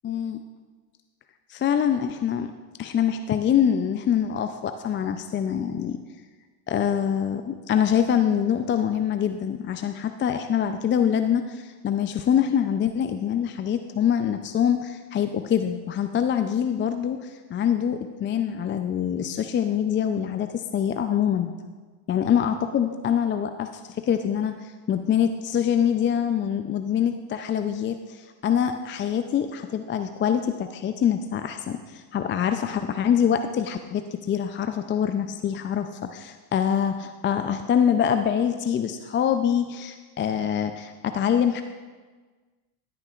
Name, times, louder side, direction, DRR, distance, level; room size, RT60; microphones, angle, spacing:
voice 1, 0.0-0.4 1.5-2.5 2.8-6.0 6.7-21.5 22.1-23.7 24.0-41.6, left 8 dB, 25° left, 8 dB, 0.4 m, -25 dB
14.0 x 9.0 x 2.4 m, 1.4 s
hypercardioid pair, 80°, 47 cm